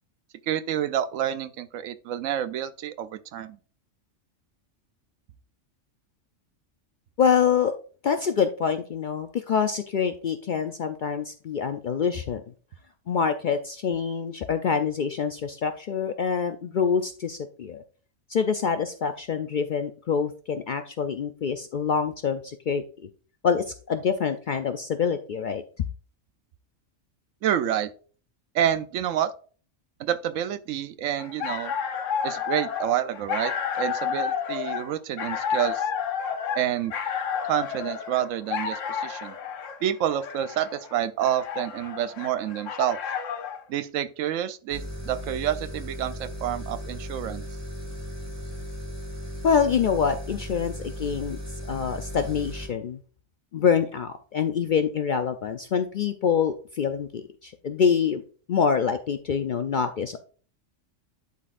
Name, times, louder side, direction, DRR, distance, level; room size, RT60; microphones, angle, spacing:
voice 1, 0.5-3.6 27.4-27.9 28.5-29.3 30.0-31.7 32.2-35.9 36.6-36.9 37.4-39.4 39.8-43.0 43.7-47.4, right 10 dB, 85° right, 1.0 m, -28 dB
voice 2, 7.2-7.7 8.0-12.4 13.1-17.8 18.3-22.8 23.4-25.6 49.4-51.4 51.7-53.0 53.5-58.2 58.5-60.2, left 6 dB, 60° left, 0.5 m, -26 dB
sound 1, 31.2-43.6, left 7 dB, 80° left, 1.1 m, -31 dB
sound 2, 44.7-52.7, equal, 15° right, 1.6 m, -36 dB
11.5 x 4.1 x 2.5 m
omnidirectional pair, 1.3 m